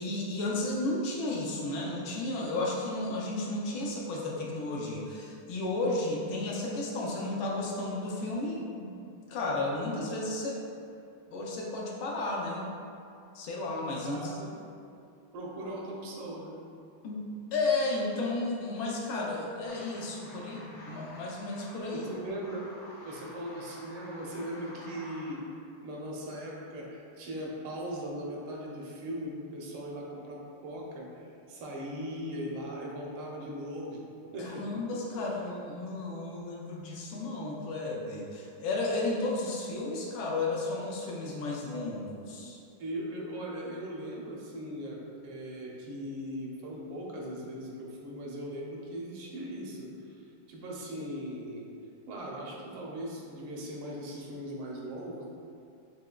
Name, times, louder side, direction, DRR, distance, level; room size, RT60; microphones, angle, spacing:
voice 1, 0.0-10.6 11.3-12.7 13.3-14.3 17.0-17.2 17.5-22.1 34.4-42.6, left 2 dB, 75° left, -3 dB, 1.4 m, -33 dB
voice 2, 14.0-14.5 15.3-16.6 21.9-22.7 23.0-25.4 25.8-34.0 34.3-34.6 42.8-51.7 52.1-55.3, equal, 85° right, -2 dB, 1.6 m, -39 dB
sound 1, 19.7-25.4, left 1 dB, 60° left, 1.1 m, -49 dB
6.1 x 2.9 x 2.2 m, 2.5 s
omnidirectional pair, 2.3 m